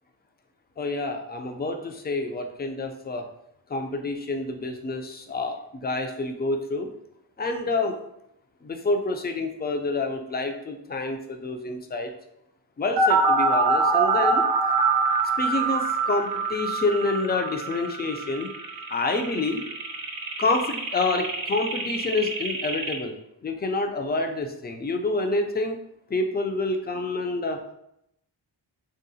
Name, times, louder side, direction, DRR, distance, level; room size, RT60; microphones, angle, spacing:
voice 1, 0.8-3.3 3.7-6.9 7.4-8.0 8.6-12.1 12.8-14.5 15.4-18.5 18.9-19.6 20.4-23.2 23.4-25.8 26.1-27.6, left 2 dB, 25° left, 5 dB, 0.3 m, -28 dB
sound 1, 13.0-23.0, right 3 dB, 55° right, 0.7 m, -25 dB
3.8 x 2.0 x 2.6 m, 0.79 s
wide cardioid pair, 65°, 44 cm